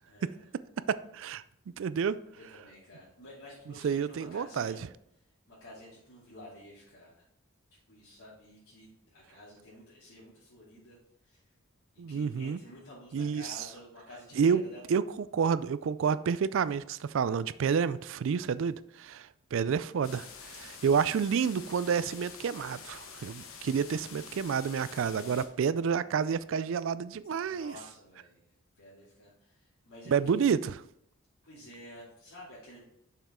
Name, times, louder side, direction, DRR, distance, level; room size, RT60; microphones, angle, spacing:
voice 1, 0.0-0.4 2.3-4.8 5.5-7.2 7.9-11.0 11.2-11.4 11.9-14.8 23.8-24.2 25.4-25.8 27.4-30.5 31.4-32.8, left 1 dB, 90° left, 2.7 m, -51 dB
voice 2, 0.9-1.4 1.8-2.2 3.8-4.8 12.0-12.6 13.1-13.6 14.4-14.6 14.9-15.0 15.3-27.7 30.1-30.7, right 6 dB, 60° right, 0.3 m, -29 dB
sound 1, 20.0-25.5, left 6 dB, 70° left, 1.1 m, -47 dB
7.1 x 5.8 x 3.7 m
head